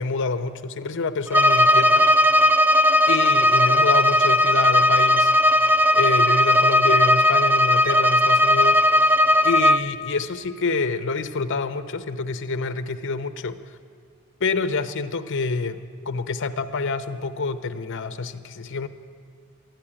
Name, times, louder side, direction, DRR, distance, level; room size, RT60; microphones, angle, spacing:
voice 1, 0.0-1.9 3.1-9.1 9.4-13.6 14.4-18.9, left 4 dB, 60° left, 10 dB, 0.7 m, -27 dB
Bowed string instrument, 1.3-9.9, left 1 dB, 10° right, 0.4 m, -17 dB
13.0 x 10.5 x 9.9 m, 2.3 s
head